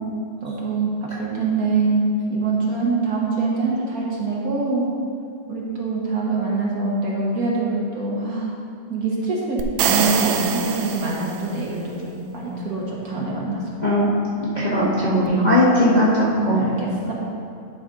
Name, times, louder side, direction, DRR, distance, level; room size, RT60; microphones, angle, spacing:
voice 1, 0.4-4.9 5.5-8.5 8.9-13.6 16.5-17.1, right 3 dB, 55° right, -4 dB, 1.5 m, -24 dB
sound 1, 9.6-11.7, right 7 dB, 75° right, 1.1 m, -24 dB
voice 2, 14.4-16.6, equal, 30° left, -8 dB, 1.1 m, -18 dB
10.5 x 5.2 x 3.8 m, 2.3 s
omnidirectional pair, 1.9 m